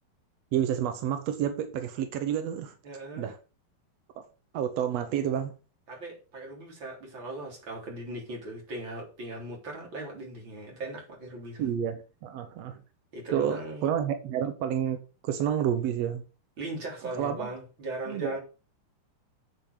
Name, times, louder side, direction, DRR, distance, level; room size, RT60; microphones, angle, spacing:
voice 1, 0.5-2.8 3.2-3.4 4.2-4.3 4.5-5.6 11.6-12.8 13.3-16.2 17.0-17.5 18.1-18.4, right 9 dB, 75° right, 1.5 m, -30 dB
voice 2, 2.8-3.3 5.9-11.6 13.1-13.9 16.6-18.4, right 2 dB, 35° right, 4.1 m, -38 dB
8.7 x 6.9 x 6.1 m
omnidirectional pair, 4.1 m